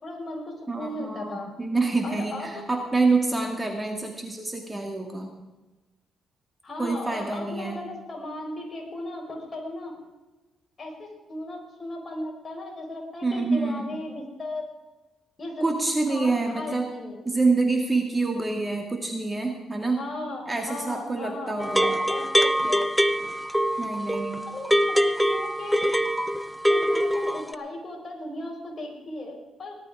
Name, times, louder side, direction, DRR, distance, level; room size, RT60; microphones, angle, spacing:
voice 1, 0.0-1.6 2.0-2.5 6.6-10.0 10.8-14.7 15.4-15.8 16.1-17.2 20.0-22.9 24.5-25.8 26.7-29.7, left 1 dB, 35° left, 0 dB, 4.9 m, -36 dB
voice 2, 0.7-5.3 6.8-7.8 13.2-14.1 15.6-16.9 17.3-20.0 20.5-22.0 23.8-24.4, right 3 dB, 15° right, 3 dB, 2.1 m, -26 dB
sound 1, 21.6-27.5, equal, ahead, 0.8 m, -24 dB
18.0 x 12.0 x 4.9 m, 1.1 s
cardioid pair, 90°, 0 cm